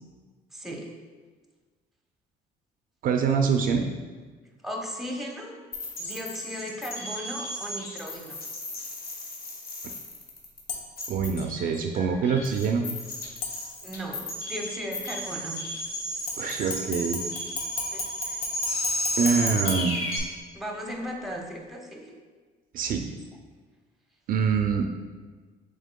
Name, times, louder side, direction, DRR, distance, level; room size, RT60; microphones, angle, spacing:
voice 1, 0.5-0.9 4.6-5.6 6.0-8.4 13.8-15.6 17.9-18.4 20.5-22.1, equal, ahead, 0 dB, 0.7 m, -36 dB
voice 2, 3.0-3.9 11.1-12.8 16.4-17.2 19.2-20.0 22.7-23.1 24.3-24.9, right 6 dB, 55° right, 4 dB, 0.4 m, -25 dB
sound 1, 5.7-20.2, equal, 60° left, 1.2 m, -34 dB
sound 2, 10.7-11.1 13.4-14.1 16.3-20.7 21.1-21.2, left 3 dB, 85° left, 0.8 m, -36 dB
7.2 x 3.3 x 2.2 m, 1.4 s
cardioid pair, 110°, 17 cm